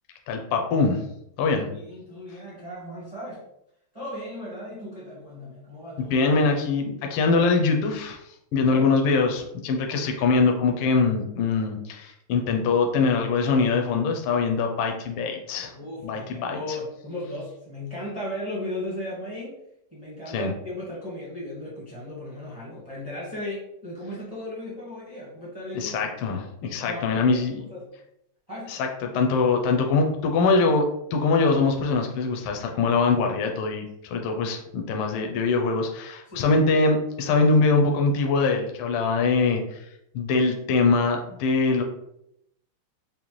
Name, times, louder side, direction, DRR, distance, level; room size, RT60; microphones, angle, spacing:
voice 1, 0.3-1.0 1.4-1.7 6.0-8.2 8.5-15.7 16.0-16.6 20.3-20.5 25.7-27.6 28.7-39.8 40.1-41.8, left 4 dB, 80° left, 3 dB, 1.5 m, -23 dB
voice 2, 1.4-3.4 3.9-6.2 8.6-8.9 15.7-19.5 19.9-25.9 26.2-26.4 26.9-27.9 28.5-28.7 36.3-36.6, left 1 dB, 20° right, -6 dB, 0.6 m, -36 dB
5.2 x 2.1 x 3.0 m, 0.78 s
omnidirectional pair, 2.4 m